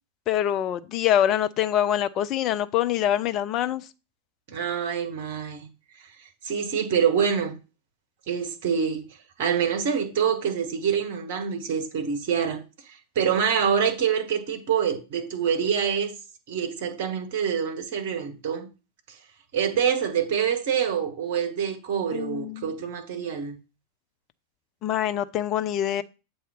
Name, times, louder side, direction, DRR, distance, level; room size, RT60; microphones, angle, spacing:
voice 1, 0.3-3.9 22.1-22.7 24.8-26.0, left 11 dB, 35° left, 0.5 m, -25 dB
voice 2, 4.5-5.7 6.4-7.6 8.3-9.1 9.4-12.6 13.1-16.1 16.5-18.7 19.5-23.6, right 7 dB, 50° right, 1.3 m, -26 dB
7.6 x 2.7 x 5.0 m
figure-of-eight pair, 90°, 0 cm